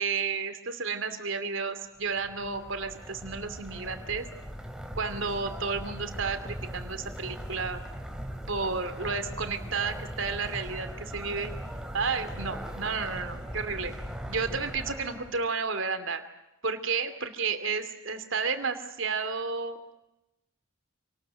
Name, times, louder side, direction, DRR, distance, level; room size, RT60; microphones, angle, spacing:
voice 1, 0.0-4.2 5.0-7.8 8.5-11.5 11.9-13.9 14.3-16.2 16.6-19.9, right 4 dB, 65° right, 8 dB, 2.7 m, -32 dB
sound 1, 2.0-15.5, equal, 5° right, 2.8 m, -40 dB
27.5 x 20.0 x 7.9 m, 0.90 s
head